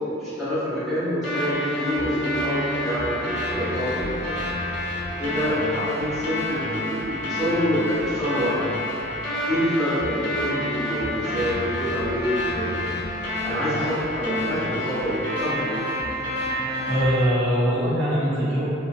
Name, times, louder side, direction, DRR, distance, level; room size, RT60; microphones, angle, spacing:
voice 1, 0.2-4.4 5.2-8.7 9.5-13.0 13.4-15.8, equal, ahead, -15 dB, 0.8 m, -26 dB
sound 1, 1.2-17.2, left 1 dB, 60° left, 0.8 m, -29 dB
voice 2, 16.9-18.7, equal, 80° right, -10 dB, 0.8 m, -22 dB
2.4 x 2.2 x 2.5 m, 2.8 s
head